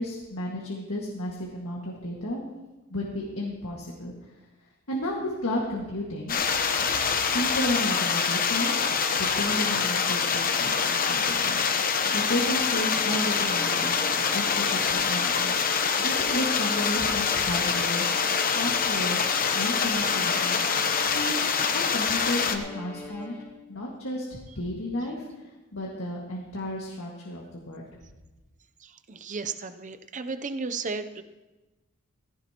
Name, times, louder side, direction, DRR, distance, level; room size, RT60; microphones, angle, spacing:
voice 1, 0.0-2.4 2.9-4.1 4.9-6.4 6.9-7.0 7.3-8.8 9.2-11.6 11.9-18.1 18.4-19.2 19.5-20.6 21.0-23.3 23.7-27.9, left 1 dB, 70° left, -3 dB, 1.9 m, -33 dB
sound 1, 6.3-22.6, left 6 dB, 45° left, 0.9 m, -25 dB
Bowed string instrument, 12.7-23.7, left 1 dB, 10° left, 3.1 m, -42 dB
voice 2, 28.8-31.2, right 4 dB, 35° right, 10 dB, 0.6 m, -34 dB
15.5 x 15.5 x 3.0 m, 1.1 s
head